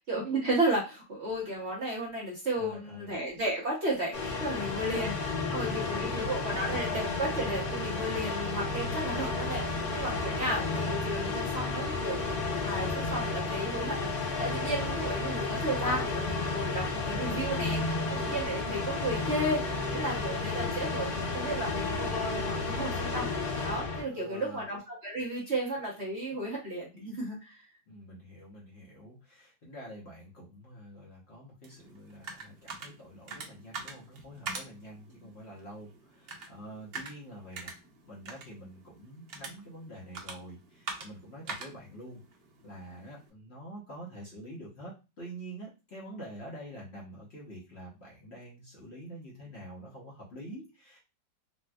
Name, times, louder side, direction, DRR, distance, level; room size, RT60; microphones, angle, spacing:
voice 1, 0.1-5.2 5.5-17.8 18.1-23.3 23.6-27.6, right 1 dB, 50° right, -3 dB, 0.9 m, -33 dB
voice 2, 2.6-3.1 4.4-5.0 5.5-6.6 24.1-24.6 27.9-37.7 38.0-42.2 42.6-51.0, right 1 dB, 45° left, -5 dB, 1.0 m, -46 dB
sound 1, 4.1-24.0, left 3 dB, 80° left, 0.5 m, -32 dB
sound 2, 31.6-43.3, right 4 dB, 80° right, 0.5 m, -45 dB
4.2 x 2.2 x 2.2 m, 0.29 s
omnidirectional pair, 1.9 m